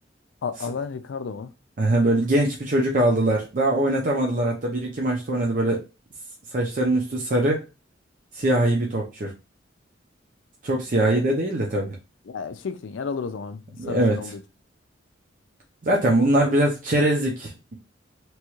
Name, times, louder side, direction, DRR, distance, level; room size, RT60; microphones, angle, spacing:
voice 1, 0.4-1.5 11.0-11.2 12.3-14.4, left 5 dB, 80° left, 0.4 m, -32 dB
voice 2, 1.8-5.8 6.5-7.6 8.3-9.3 10.6-12.0 13.8-14.2 15.8-17.8, right 1 dB, 45° right, 0.6 m, -22 dB
3.0 x 2.4 x 3.0 m
head